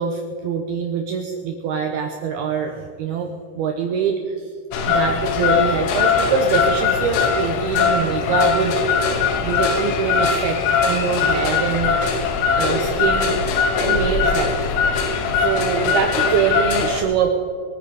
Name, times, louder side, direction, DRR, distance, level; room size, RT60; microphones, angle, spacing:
voice 1, 0.0-4.5 4.9-8.7 9.4-12.0 12.6-13.4 13.8-14.5 15.4-17.3, right 6 dB, 80° right, 4 dB, 2.3 m, -24 dB
sound 1, 4.7-17.0, left 5 dB, 80° left, 3.6 m, -20 dB
23.5 x 9.4 x 4.9 m, 2.1 s
omnidirectional pair, 5.5 m